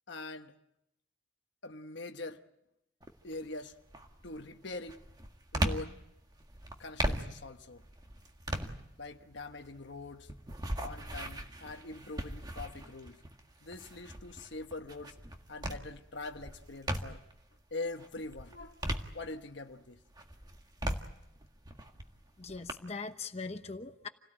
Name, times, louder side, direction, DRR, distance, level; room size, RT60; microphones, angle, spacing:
voice 1, 0.1-0.5 1.6-2.4 3.2-3.8 4.2-5.0 5.5-6.0 6.8-7.8 9.0-10.3 10.8-13.2 13.6-15.2 15.5-17.2 17.7-18.8 19.1-20.0, left 2 dB, 60° left, 1.2 m, -43 dB
sound 1, 3.0-3.4 3.9-17.4 17.9-19.7 20.1-22.7, right 1 dB, 20° right, 1.7 m, -39 dB
voice 2, 22.4-24.1, left 4 dB, 30° left, 0.9 m, -41 dB
28.5 x 17.5 x 9.0 m
head